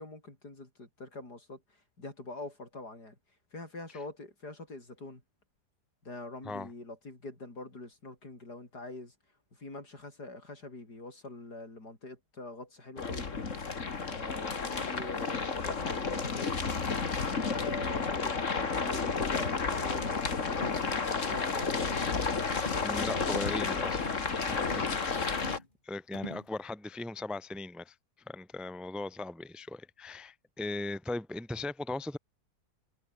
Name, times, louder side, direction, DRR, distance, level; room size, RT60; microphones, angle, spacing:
voice 1, 0.0-3.2 3.5-5.2 6.0-9.1 9.5-13.3 14.0-16.6 17.3-21.8 22.7-23.5, left 2 dB, 75° left, 7.1 m, -44 dB
sound 1, 13.0-25.6, left 4 dB, 50° left, 2.5 m, -31 dB
sound 2, 19.9-20.2 20.5-20.8 21.2-21.5 21.9-22.2 22.5-22.9 23.2-23.5 23.9-24.2 24.6-25.0 25.3-25.7 26.1-26.5, left 2 dB, 30° left, 3.5 m, -43 dB
voice 2, 22.8-24.2 24.5-27.9 28.3-32.2, left 2 dB, ahead, 1.0 m, -38 dB
omnidirectional pair, 1.7 m